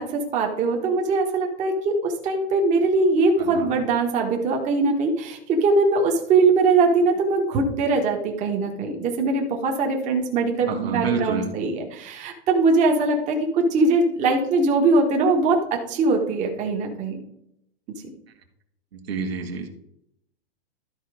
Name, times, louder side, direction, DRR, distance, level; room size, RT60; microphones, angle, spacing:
voice 1, 0.0-17.2, right 3 dB, 25° right, 1 dB, 1.5 m, -21 dB
voice 2, 3.4-3.8 10.7-11.5 18.9-19.7, right 5 dB, 80° right, 4 dB, 1.9 m, -28 dB
13.0 x 4.5 x 4.9 m, 0.77 s
hypercardioid pair, 150°, 30 cm